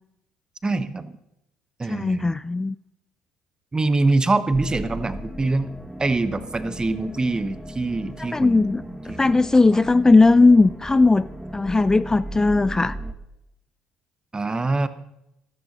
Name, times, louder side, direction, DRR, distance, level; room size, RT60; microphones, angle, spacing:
voice 1, 0.6-1.1 1.8-2.4 3.7-5.7 6.0-9.4 9.7-9.8 14.3-14.9, right 3 dB, 25° right, 12 dB, 1.3 m, -24 dB
voice 2, 1.9-2.8 8.2-11.3 11.5-13.0, left 3 dB, 20° left, 16 dB, 0.4 m, -18 dB
sound 1, 4.5-13.1, right 1 dB, ahead, 1.8 m, -37 dB
14.0 x 13.5 x 5.4 m, 0.86 s
hypercardioid pair, 55°, 3 cm